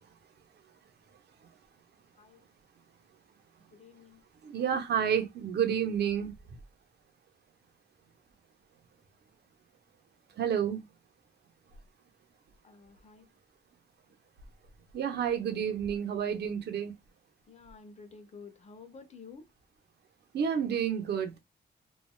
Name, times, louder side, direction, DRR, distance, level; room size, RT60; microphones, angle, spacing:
voice 1, 3.7-4.2 12.6-13.3 17.5-19.5, left 5 dB, 40° left, 0.6 m, -51 dB
voice 2, 4.4-6.3 10.4-10.8 14.9-16.9 20.3-21.4, right 8 dB, 80° right, 0.7 m, -30 dB
3.2 x 2.3 x 2.2 m
wide cardioid pair, 125°, 17 cm